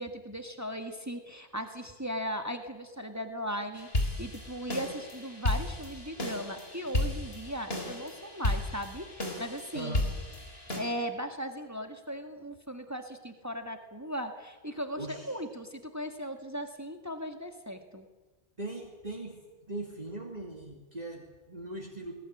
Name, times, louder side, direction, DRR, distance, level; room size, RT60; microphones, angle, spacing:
voice 1, 0.0-10.0 10.7-18.1, equal, 15° right, 6 dB, 1.8 m, -38 dB
sound 1, 3.8-10.8, left 1 dB, 65° left, 4.3 m, -34 dB
voice 2, 9.7-10.1 15.0-15.4 18.6-19.4 19.7-22.1, right 2 dB, 40° right, 1 dB, 2.7 m, -40 dB
21.0 x 19.0 x 9.9 m, 1.2 s
omnidirectional pair, 1.1 m